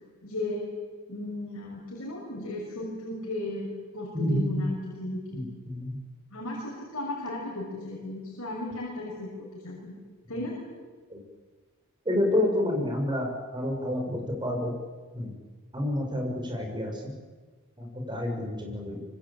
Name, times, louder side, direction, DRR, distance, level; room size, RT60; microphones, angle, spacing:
voice 1, 0.2-0.7 1.1-5.4 6.3-9.3 9.6-9.9 10.3-10.6, left 1 dB, 65° left, -3 dB, 6.5 m, -35 dB
voice 2, 4.1-4.7 5.3-6.0 11.1-11.2 12.1-14.7 15.1-15.3 15.7-17.1 17.8-19.1, left 1 dB, 20° right, 2 dB, 6.8 m, -29 dB
25.5 x 25.0 x 8.9 m, 1.4 s
head